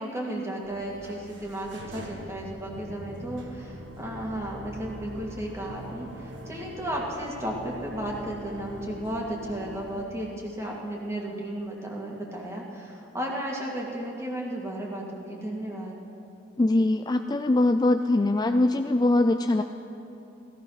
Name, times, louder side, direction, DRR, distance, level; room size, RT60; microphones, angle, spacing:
voice 1, 0.0-16.0, right 1 dB, 15° right, -2 dB, 2.3 m, -34 dB
sound 1, 0.6-10.0, equal, 85° right, 1.7 m, -42 dB
voice 2, 16.6-19.6, left 2 dB, 20° left, 7 dB, 0.4 m, -22 dB
16.5 x 14.5 x 5.8 m, 2.8 s
head